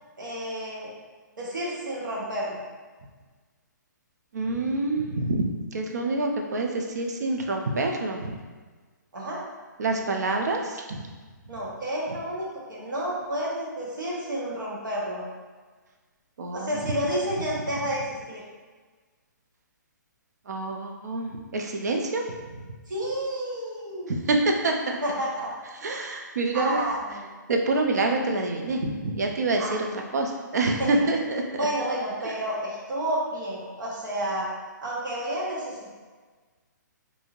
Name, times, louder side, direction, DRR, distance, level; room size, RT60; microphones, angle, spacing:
voice 1, 0.2-0.9 1.4-2.6 9.1-9.4 11.5-15.2 16.5-18.4 22.9-24.2 25.0-25.5 26.5-27.3 29.6-29.8 30.8-31.0 31.6-34.5 34.8-35.9, right 1 dB, 85° right, -5 dB, 1.0 m, -30 dB
voice 2, 4.3-5.5 5.7-8.3 9.8-10.6 10.9-11.0 16.4-16.7 20.5-22.2 24.1-24.4 24.6-25.0 25.8-26.8 27.5-29.6 30.1-31.4, right 2 dB, 60° right, 2 dB, 0.4 m, -26 dB
3.1 x 2.6 x 2.4 m, 1.4 s
hypercardioid pair, 180°, 10 cm